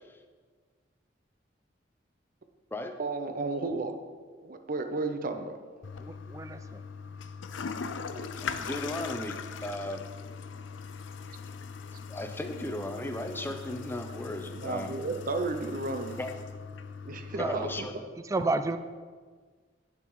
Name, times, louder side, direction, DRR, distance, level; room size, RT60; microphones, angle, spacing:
voice 1, 3.0-3.9 4.4-5.6 8.2-8.3 14.5-16.2 17.1-17.9, right 3 dB, 50° right, 7 dB, 0.6 m, -33 dB
Toilet flush, 5.8-17.8, left 5 dB, 80° left, 0.5 m, -40 dB
voice 2, 5.9-6.8 17.3-17.6 18.2-18.8, right 3 dB, 15° right, 10 dB, 0.3 m, -31 dB
voice 3, 8.4-10.1 12.1-15.0 16.2-16.3 17.4-17.9, left 1 dB, 10° left, 6 dB, 0.7 m, -36 dB
8.8 x 7.0 x 4.7 m, 1.5 s
head